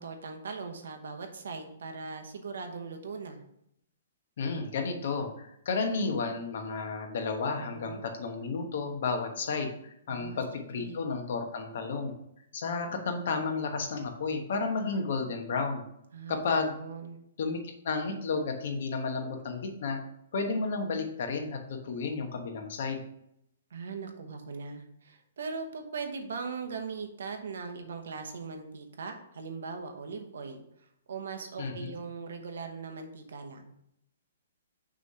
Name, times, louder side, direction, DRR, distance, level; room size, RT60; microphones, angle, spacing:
voice 1, 0.0-3.4 7.6-8.1 10.1-10.4 10.7-11.0 12.9-13.0 16.1-17.2 19.2-19.4 23.7-33.7, right 4 dB, 80° right, 6 dB, 1.1 m, -40 dB
voice 2, 4.4-12.1 12.5-15.8 16.3-16.7 17.4-20.0 20.3-23.0 31.6-32.0, left 4 dB, 55° left, 4 dB, 1.1 m, -32 dB
6.1 x 3.3 x 5.6 m, 0.76 s
hypercardioid pair, 165°, 0 cm